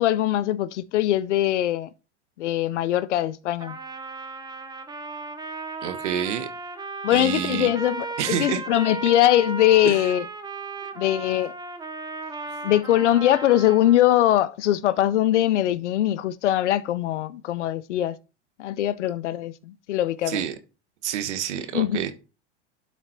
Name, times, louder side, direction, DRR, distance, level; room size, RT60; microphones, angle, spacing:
voice 1, 0.0-1.9 2.4-3.8 7.0-10.3 11.0-11.5 12.6-18.2 18.6-20.4 21.7-22.1, left 13 dB, 90° left, 0.7 m, -22 dB
Trumpet, 3.6-14.0, right 4 dB, 10° right, 0.9 m, -35 dB
voice 2, 5.8-6.5 7.1-7.7 8.2-8.6 9.8-10.0 20.3-20.5 21.0-22.1, right 10 dB, 85° right, 1.3 m, -28 dB
11.5 x 4.2 x 4.4 m
hypercardioid pair, 110°, 34 cm